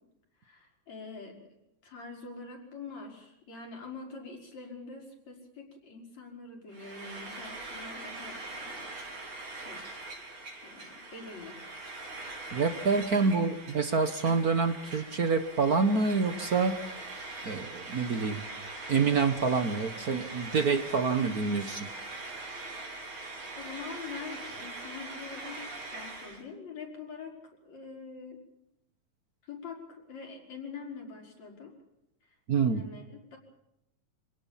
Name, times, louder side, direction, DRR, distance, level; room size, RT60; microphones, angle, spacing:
voice 1, 0.4-1.5 1.8-8.9 9.5-9.9 10.6-11.6 13.2-13.3 23.6-27.4 27.6-28.4 29.4-31.7 32.6-33.4, left 4 dB, 65° left, 1 dB, 6.7 m, -44 dB
Frying (food), 6.7-26.4, right 2 dB, 85° right, 6.6 m, -42 dB
voice 2, 12.5-16.8 17.4-18.4 18.9-21.9 32.5-32.8, right 4 dB, 55° right, 10 dB, 1.0 m, -27 dB
26.5 x 18.0 x 7.4 m, 0.83 s
omnidirectional pair, 3.3 m